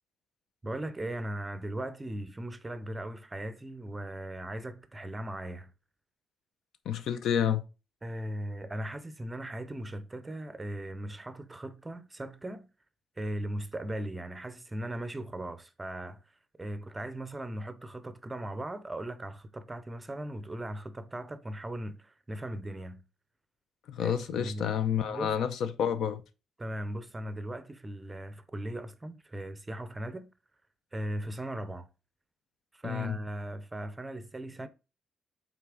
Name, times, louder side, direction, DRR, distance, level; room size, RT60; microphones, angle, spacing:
voice 1, 0.6-5.7 8.0-12.7 13.2-16.2 16.6-23.0 24.0-24.8 25.1-25.4 26.6-30.3 30.9-31.9 32.7-34.7, right 1 dB, 15° right, 0.5 m, -38 dB
voice 2, 6.9-7.6 23.9-26.2 32.8-33.2, left 8 dB, 75° left, 0.7 m, -29 dB
5.8 x 4.0 x 4.9 m
cardioid pair, 165°, 0 cm